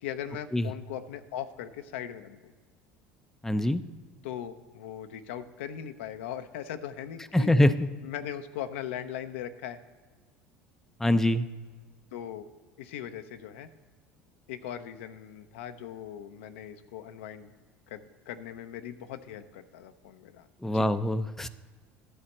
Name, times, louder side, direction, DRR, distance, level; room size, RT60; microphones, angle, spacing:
voice 1, 0.0-2.5 4.2-7.5 8.0-9.8 12.1-12.5 12.8-13.7 14.5-17.5 17.9-20.9, left 10 dB, 85° left, 8 dB, 0.6 m, -39 dB
voice 2, 3.4-3.8 7.3-7.9 11.0-11.5 20.6-21.5, left 1 dB, 5° left, 10 dB, 0.5 m, -24 dB
11.0 x 4.2 x 7.1 m, 1.4 s
hypercardioid pair, 85°, 6 cm